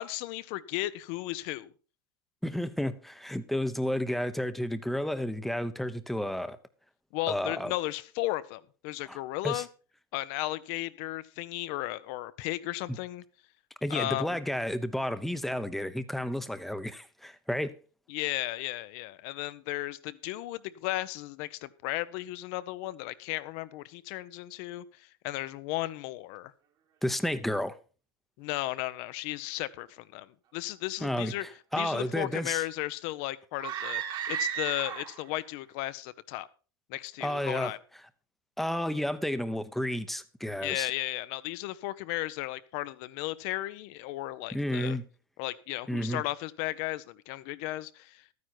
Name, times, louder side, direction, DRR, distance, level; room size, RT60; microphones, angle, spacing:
voice 1, 0.0-1.7 7.1-9.7 10.1-13.2 13.9-14.4 18.1-26.5 28.4-31.5 31.8-36.5 36.9-37.8 40.6-45.0 45.4-48.2, left 17 dB, 55° left, 0.9 m, -35 dB
voice 2, 2.4-6.6 7.3-7.7 9.1-9.2 9.4-9.6 13.8-17.8 27.0-27.8 31.0-32.6 37.2-37.7 38.6-40.9 44.5-45.0 45.9-46.2, equal, ahead, 0.9 m, -31 dB
sound 1, 33.6-35.3, right 9 dB, 40° right, 1.8 m, -34 dB
12.5 x 9.6 x 4.4 m
hypercardioid pair, 105°, 12 cm